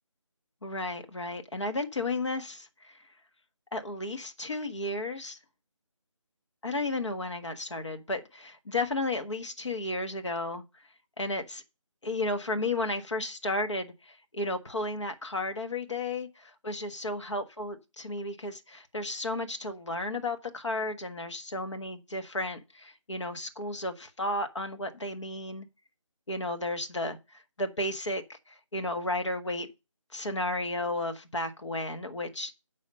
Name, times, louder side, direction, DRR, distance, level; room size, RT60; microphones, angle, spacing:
voice 1, 0.6-3.0 3.7-5.4 6.6-10.6 11.2-11.6 12.0-25.7 26.3-29.7 30.1-32.5, left 2 dB, 65° left, 1.4 m, -33 dB
6.3 x 5.6 x 6.4 m
figure-of-eight pair, 170°, 17 cm